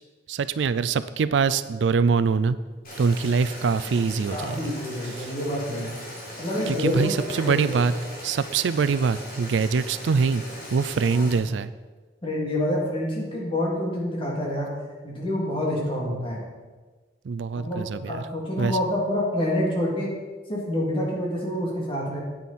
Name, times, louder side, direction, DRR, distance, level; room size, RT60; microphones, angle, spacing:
voice 1, 0.3-2.6 3.0-4.7 5.1-5.3 6.7-7.9 8.2-10.4 10.7-11.7 17.3-18.2 18.6-18.8, right 5 dB, 75° right, 14 dB, 0.4 m, -24 dB
Boiling, 2.8-11.3, equal, 50° left, 3.7 m, -39 dB
voice 2, 4.3-5.9 6.4-7.2 7.4-7.7 11.1-11.2 12.2-14.7 15.0-16.4 17.5-20.1 20.5-22.2, left 1 dB, 30° left, -3 dB, 2.6 m, -27 dB
9.4 x 9.0 x 4.2 m, 1.3 s
head